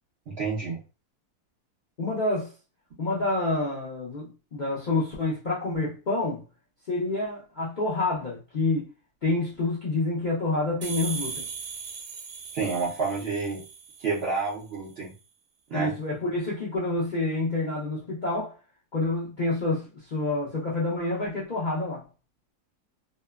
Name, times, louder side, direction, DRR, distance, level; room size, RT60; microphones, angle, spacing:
voice 1, 0.3-0.8 12.5-13.6 14.0-15.1 15.7-15.9, right 4 dB, 60° right, 0.7 m, -29 dB
voice 2, 2.0-2.5 3.0-6.4 6.9-8.9 9.2-11.4 15.7-18.5 18.9-22.0, left 2 dB, 55° left, 0.5 m, -28 dB
sound 1, 10.8-14.4, right 6 dB, 80° right, 1.2 m, -38 dB
2.9 x 2.1 x 2.2 m
omnidirectional pair, 1.7 m